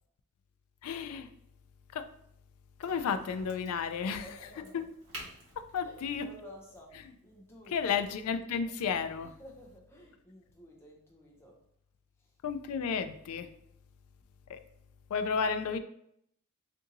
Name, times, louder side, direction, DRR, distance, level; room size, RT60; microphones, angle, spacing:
voice 1, 0.8-1.3 1.9-2.0 2.8-4.3 4.7-4.8 5.7-6.3 7.7-9.3 12.4-13.5 14.5-14.6 15.1-15.8, left 6 dB, 75° left, 10 dB, 0.3 m, -32 dB
Crack, 2.8-8.2, right 1 dB, 55° right, 1.2 m, -52 dB
voice 2, 4.0-4.9 5.8-8.0 9.2-11.6, equal, 10° left, -2 dB, 0.5 m, -52 dB
2.7 x 2.6 x 3.8 m, 0.73 s
head